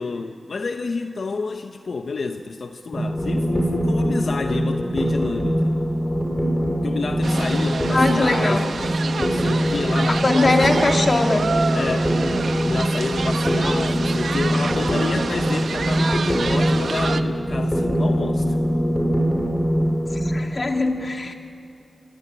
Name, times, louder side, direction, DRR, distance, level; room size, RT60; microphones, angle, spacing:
voice 1, 0.0-5.8 6.8-8.7 9.1-10.9 11.7-12.1 12.6-18.6, left 4 dB, 75° left, 6 dB, 1.0 m, -29 dB
sound 1, 2.9-20.4, equal, 25° left, 6.2 m, -22 dB
sound 2, 7.2-17.2, right 4 dB, 90° right, 1.0 m, -28 dB
voice 2, 7.9-8.7 10.2-11.5 20.1-21.3, left 2 dB, 45° left, 4 dB, 2.2 m, -21 dB
27.5 x 18.0 x 9.9 m, 2.5 s
wide cardioid pair, 70°, 0 cm